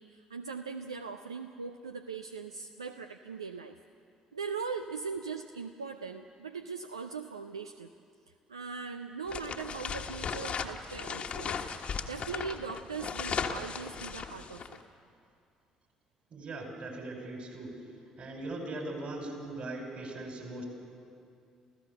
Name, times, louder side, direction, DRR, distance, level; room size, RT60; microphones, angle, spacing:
voice 1, 0.0-3.8 4.3-7.9 8.5-14.8, right 5 dB, 85° right, 7 dB, 0.4 m, -40 dB
sound 1, 9.3-14.8, left 6 dB, 45° left, 1.3 m, -36 dB
voice 2, 16.3-17.9 18.2-20.6, right 2 dB, 50° right, 1 dB, 5.4 m, -40 dB
28.0 x 15.5 x 6.7 m, 2.4 s
figure-of-eight pair, 50°, 3 cm